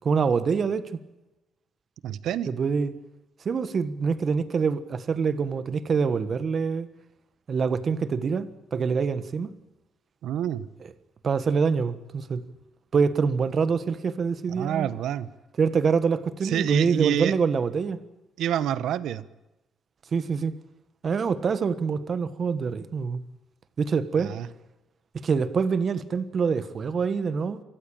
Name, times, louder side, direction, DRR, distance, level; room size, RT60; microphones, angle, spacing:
voice 1, 0.0-0.9 2.5-2.9 3.4-6.9 7.5-9.5 11.2-12.4 12.9-14.9 15.6-18.0 20.1-20.5 21.0-23.2 23.8-24.3 25.2-27.6, right 5 dB, 50° right, 1.5 m, -25 dB
voice 2, 2.0-2.5 10.2-10.7 14.5-15.3 16.4-17.3 18.4-19.3 24.2-24.5, right 11 dB, 80° right, 1.0 m, -27 dB
25.0 x 15.0 x 8.9 m
cardioid pair, 90°, 0 cm